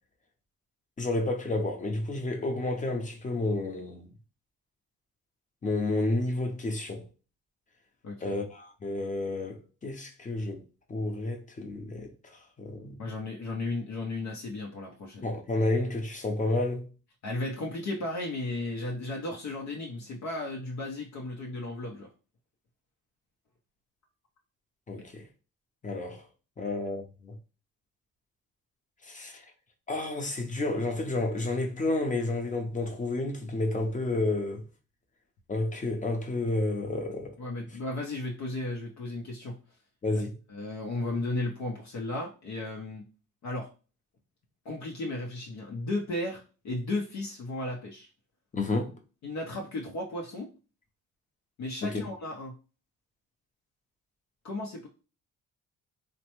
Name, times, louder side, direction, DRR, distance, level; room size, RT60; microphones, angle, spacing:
voice 1, 1.0-4.1 5.6-7.1 8.2-10.6 10.9-12.1 12.6-13.0 15.2-16.9 24.9-25.2 25.8-26.2 26.6-27.4 29.0-29.4 29.9-34.6 35.5-37.4 40.0-40.4 48.5-48.9 51.8-52.0, left 2 dB, 25° left, 0.7 m, -30 dB
voice 2, 8.0-8.4 13.0-15.3 17.2-22.1 37.4-39.6 40.5-43.0 43.4-43.7 44.6-48.1 49.2-50.5 51.6-52.5 54.4-54.9, left 2 dB, 65° left, 0.7 m, -34 dB
3.1 x 2.2 x 3.0 m
cardioid pair, 90°, 30 cm